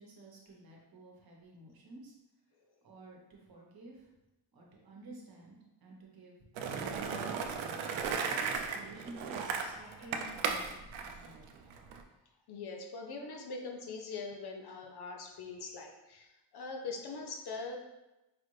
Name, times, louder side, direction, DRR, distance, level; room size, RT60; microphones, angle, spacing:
voice 1, 0.0-2.1 2.8-4.1 4.5-7.6 8.4-11.7, right 2 dB, 50° right, -1 dB, 1.1 m, -52 dB
Skateboard, 6.6-12.0, right 5 dB, 80° right, 0.6 m, -36 dB
voice 2, 9.8-10.1 12.5-17.8, left 4 dB, 55° left, 2 dB, 0.7 m, -43 dB
4.9 x 2.5 x 3.2 m, 0.98 s
cardioid pair, 120°, 46 cm